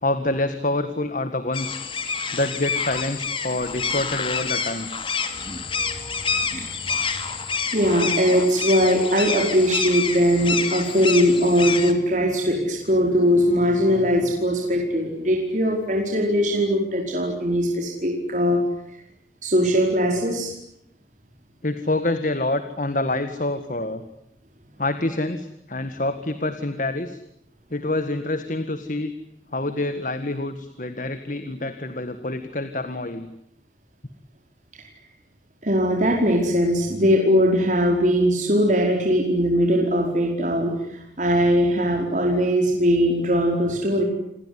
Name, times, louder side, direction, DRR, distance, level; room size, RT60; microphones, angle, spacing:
voice 1, 0.0-1.8 2.3-4.9 21.6-24.0 24.8-27.2 27.7-29.1 29.5-33.3, left 2 dB, 45° left, 10 dB, 1.8 m, -26 dB
sound 1, 1.5-11.9, left 5 dB, 30° left, 2.5 m, -28 dB
voice 2, 7.7-18.6 19.4-20.5 35.6-40.7 41.2-44.0, equal, 45° right, 0 dB, 5.0 m, -20 dB
28.5 x 21.5 x 9.8 m, 0.77 s
head